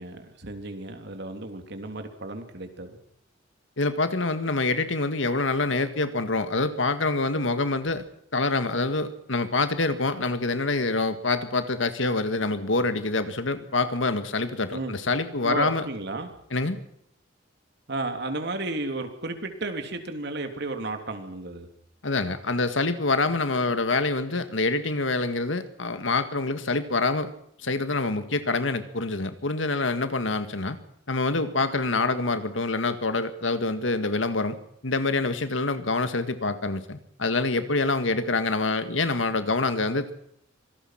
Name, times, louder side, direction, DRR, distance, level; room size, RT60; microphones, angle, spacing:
voice 1, 0.0-3.0 14.7-14.9 15.4-16.3 17.9-21.7, right 2 dB, 60° right, 6 dB, 3.2 m, -33 dB
voice 2, 3.8-8.0 8.3-15.8 16.5-16.8 22.0-27.3 27.6-30.8 31.1-34.6 34.8-40.1, left 3 dB, 85° left, 10 dB, 1.9 m, -26 dB
25.5 x 18.5 x 6.0 m, 0.74 s
head